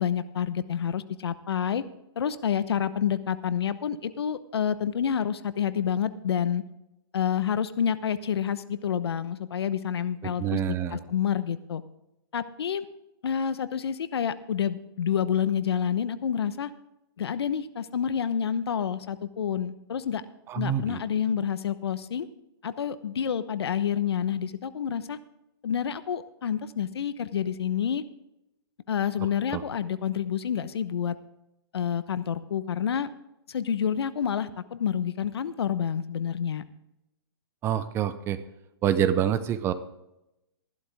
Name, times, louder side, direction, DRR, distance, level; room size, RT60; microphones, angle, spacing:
voice 1, 0.0-1.9 2.2-6.6 7.1-11.8 12.3-12.8 13.2-16.7 17.2-20.2 20.5-22.3 22.6-25.2 25.6-28.0 28.9-31.1 31.7-33.1 33.5-36.6, left 8 dB, 70° left, 14 dB, 1.0 m, -28 dB
voice 2, 10.2-11.0 20.5-21.0 29.5-29.6 37.6-38.4 38.8-39.7, right 9 dB, 20° right, 12 dB, 0.7 m, -26 dB
14.0 x 12.0 x 3.6 m, 0.88 s
hypercardioid pair, 145°, 14 cm